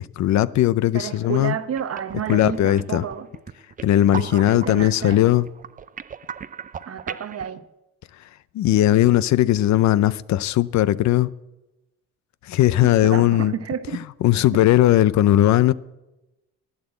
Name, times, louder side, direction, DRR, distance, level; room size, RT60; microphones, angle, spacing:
voice 1, 0.0-1.5 2.3-3.0 3.8-5.5 8.5-11.3 12.5-13.5 14.2-15.7, left 13 dB, 65° left, 0.5 m, -18 dB
voice 2, 0.9-3.3 4.1-5.3 6.9-7.6 12.8-14.0 14.5-14.7, right 8 dB, 50° right, 1.1 m, -31 dB
sound 1, 1.3-1.5 1.8-7.5, right 7 dB, 30° right, 0.4 m, -38 dB
12.0 x 9.7 x 8.0 m
cardioid pair, 90°, 30 cm